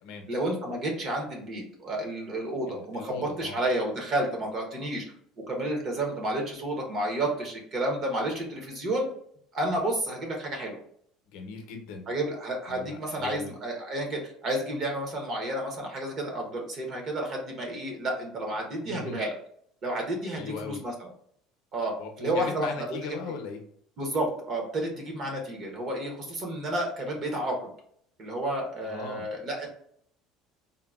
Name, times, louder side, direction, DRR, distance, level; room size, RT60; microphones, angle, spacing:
voice 1, 0.3-5.0 5.5-9.1 9.5-10.8 12.1-19.3 19.8-21.1 21.7-21.9 22.2-22.9 24.0-27.7 28.2-29.7, right 1 dB, 35° right, 1 dB, 0.8 m, -31 dB
voice 2, 2.7-3.6 11.3-12.1 12.7-13.5 18.8-19.2 20.3-20.8 22.0-23.6 28.8-29.3, left 5 dB, 75° left, 4 dB, 0.6 m, -39 dB
3.6 x 2.1 x 2.3 m, 0.64 s
cardioid pair, 155°, 0 cm